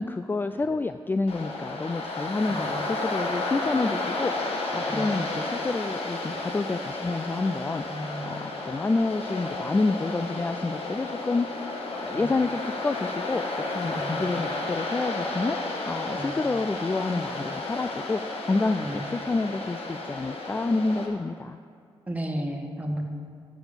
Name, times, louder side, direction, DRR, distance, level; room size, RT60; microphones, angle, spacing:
voice 1, 0.0-7.8 8.2-8.3 8.7-11.5 11.9-21.6, left 3 dB, 20° left, 9 dB, 0.3 m, -28 dB
Waves surf, 1.3-21.1, left 2 dB, 75° left, 1.5 m, -32 dB
voice 2, 2.5-2.8 4.9-5.1 7.9-8.2 12.1-12.3 13.8-14.2 16.1-16.3 18.8-19.1 22.1-23.0, equal, 15° right, 2 dB, 1.6 m, -33 dB
10.0 x 7.0 x 7.2 m, 2.3 s
cardioid pair, 70°, 10 cm